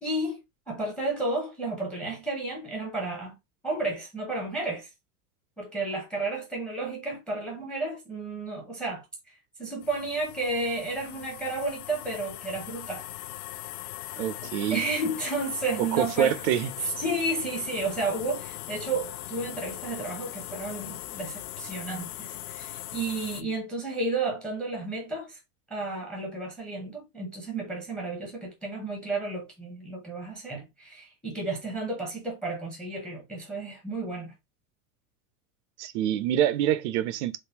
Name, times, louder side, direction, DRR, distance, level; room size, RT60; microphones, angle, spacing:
voice 1, 0.0-0.4 0.7-3.3 3.6-4.9 5.6-13.0 14.4-16.4 16.8-25.4 25.7-34.3, right 2 dB, ahead, 0.6 m, -32 dB
sound 1, 9.8-23.4, left 14 dB, 80° left, 0.5 m, -40 dB
voice 2, 14.2-14.8 15.9-16.7 35.8-37.4, right 11 dB, 55° right, 0.5 m, -26 dB
3.6 x 2.5 x 2.8 m
supercardioid pair, 160°, 43 cm